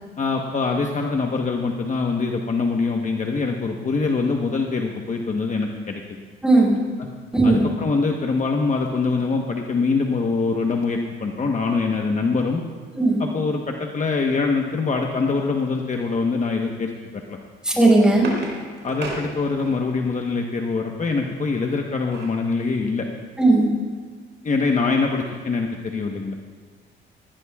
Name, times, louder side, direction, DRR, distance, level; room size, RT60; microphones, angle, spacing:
voice 1, 0.2-6.0 7.0-7.1 7.4-12.6 13.2-17.4 18.8-23.1 24.4-26.3, left 4 dB, 40° left, 2 dB, 1.1 m, -24 dB
voice 2, 6.4-6.8 7.3-7.7 13.0-13.2 17.6-18.3 23.4-23.7, right 2 dB, 5° right, -3 dB, 4.9 m, -16 dB
sound 1, 17.5-20.0 21.6-22.5 22.9-23.0 23.3-23.5, right 3 dB, 70° right, 3.4 m, -35 dB
19.0 x 15.5 x 2.4 m, 1.5 s
cardioid pair, 90°, 20 cm